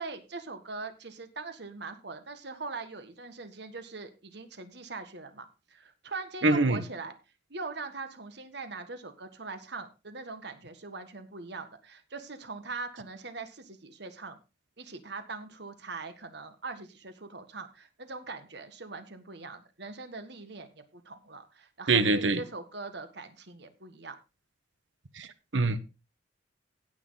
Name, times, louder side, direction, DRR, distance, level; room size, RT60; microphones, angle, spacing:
voice 1, 0.0-7.1 7.5-14.4 14.8-24.2, right 3 dB, 60° right, 9 dB, 1.6 m, -41 dB
voice 2, 6.4-6.8 21.9-22.4 25.2-25.3 25.5-25.8, right 3 dB, 75° right, 13 dB, 1.2 m, -24 dB
16.5 x 6.4 x 4.0 m, 0.29 s
head